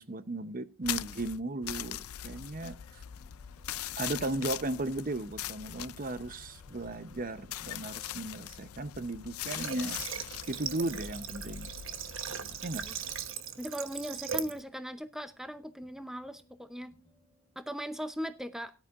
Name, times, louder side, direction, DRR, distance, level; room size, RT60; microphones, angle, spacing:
voice 1, 0.0-3.0 4.0-10.0 10.5-11.7 12.6-12.8, right 2 dB, 40° right, 0.8 m, -36 dB
sound 1, 0.8-13.3, left 12 dB, 85° left, 0.5 m, -42 dB
sound 2, 2.2-4.8 6.4-9.4 10.9-18.2, left 1 dB, 15° left, 4.3 m, -64 dB
Water / Water tap faucet, 9.4-14.6, right 8 dB, 65° right, 1.1 m, -39 dB
voice 2, 13.6-16.9 17.6-18.7, equal, ahead, 0.6 m, -39 dB
18.0 x 11.5 x 2.5 m
head